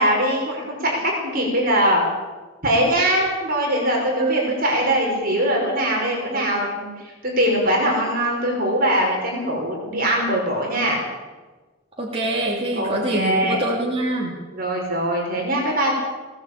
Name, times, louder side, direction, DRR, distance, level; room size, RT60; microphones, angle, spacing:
voice 1, 0.0-2.0 2.6-11.0 12.8-13.6 14.5-15.9, equal, 40° right, -1 dB, 5.6 m, -22 dB
voice 2, 4.2-4.5 6.3-6.5 12.0-14.3, right 1 dB, 25° right, -3 dB, 3.1 m, -25 dB
20.0 x 17.5 x 8.8 m, 1.3 s
head